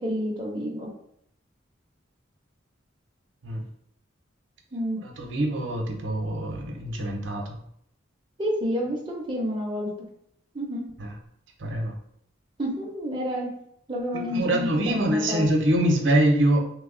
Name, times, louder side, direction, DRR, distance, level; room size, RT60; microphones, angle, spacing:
voice 1, 0.0-0.9 4.7-5.0 8.4-9.9 10.5-10.9 12.6-13.5 13.9-15.4, equal, 25° right, -2 dB, 0.6 m, -29 dB
voice 2, 5.0-7.6 11.0-11.1 11.6-11.9 14.3-16.6, right 1 dB, 70° right, 1 dB, 0.7 m, -24 dB
3.0 x 2.2 x 3.7 m, 0.71 s
head